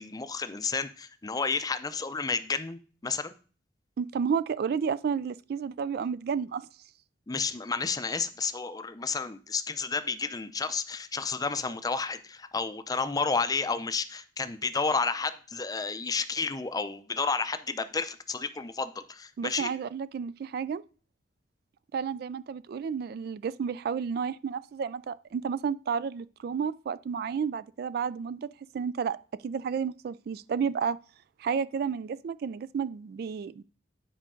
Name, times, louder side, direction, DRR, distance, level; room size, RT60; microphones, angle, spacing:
voice 1, 0.0-3.4 7.3-19.7, left 4 dB, 20° left, 0.5 m, -31 dB
voice 2, 4.0-6.7 19.4-20.8 21.9-28.5 28.7-29.2 29.4-31.0 31.4-33.6, right 6 dB, 60° right, 0.3 m, -31 dB
9.9 x 5.1 x 3.7 m
head